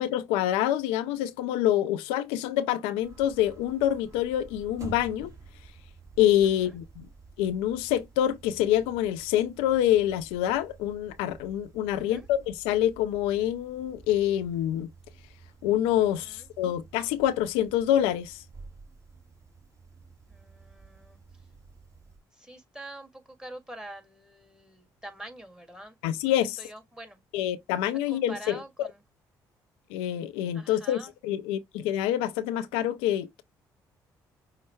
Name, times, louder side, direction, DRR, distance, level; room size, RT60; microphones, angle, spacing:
voice 1, 0.0-5.3 6.2-7.1 7.4-14.9 15.6-18.4 26.0-26.6 27.3-28.6 29.9-33.4, left 12 dB, 80° left, 0.4 m, -26 dB
sound 1, 3.0-22.2, right 4 dB, 35° right, 2.5 m, -51 dB
voice 2, 11.9-12.3 16.0-16.5 20.3-21.4 22.3-26.0 26.4-27.2 28.1-29.0 30.5-31.1, right 1 dB, 5° right, 1.7 m, -45 dB
5.6 x 2.1 x 4.3 m
hypercardioid pair, 50°, 10 cm